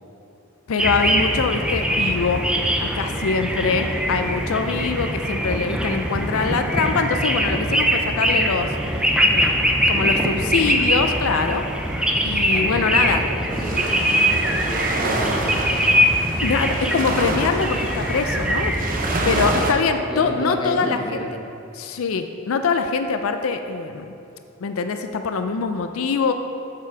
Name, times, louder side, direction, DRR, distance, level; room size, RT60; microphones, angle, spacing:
voice 1, 0.7-2.5 2.8-8.7 9.3-11.7 12.2-13.2 16.4-18.8 19.2-21.0 21.7-24.1 24.6-26.3, left 5 dB, 85° left, 7 dB, 0.5 m, -23 dB
sound 1, 0.8-19.7, equal, 5° right, 0.4 m, -22 dB
voice 2, 3.6-4.5 5.4-6.0 9.9-10.7 12.5-16.0 19.3-19.8 20.1-21.3, equal, 20° left, 0 dB, 0.8 m, -33 dB
sound 2, 13.5-19.7, right 2 dB, 40° right, 0.7 m, -28 dB
7.3 x 7.0 x 4.5 m, 2.8 s
head